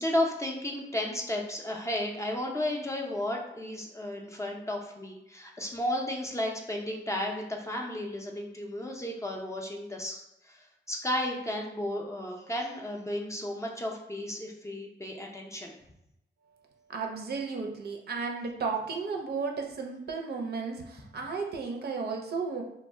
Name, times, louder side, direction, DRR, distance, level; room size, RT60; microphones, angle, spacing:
voice 1, 0.0-15.7, left 1 dB, 15° left, 0 dB, 0.4 m, -33 dB
voice 2, 16.9-22.6, right 4 dB, 60° right, 2 dB, 0.5 m, -34 dB
2.1 x 2.0 x 3.5 m, 0.86 s
cardioid pair, 90°, 19 cm